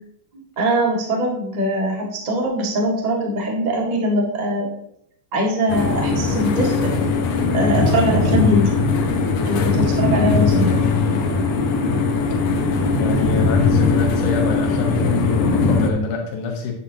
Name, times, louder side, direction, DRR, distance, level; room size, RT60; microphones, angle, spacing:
voice 1, 0.3-4.7 5.3-6.9 7.5-8.7 9.4-10.8, right 1 dB, 75° right, -1 dB, 0.4 m, -22 dB
sound 1, 5.7-15.9, left 4 dB, 65° left, 1.8 m, -19 dB
voice 2, 13.0-16.7, left 5 dB, 80° left, 1 dB, 3.0 m, -26 dB
11.0 x 10.0 x 2.8 m, 0.74 s
omnidirectional pair, 4.3 m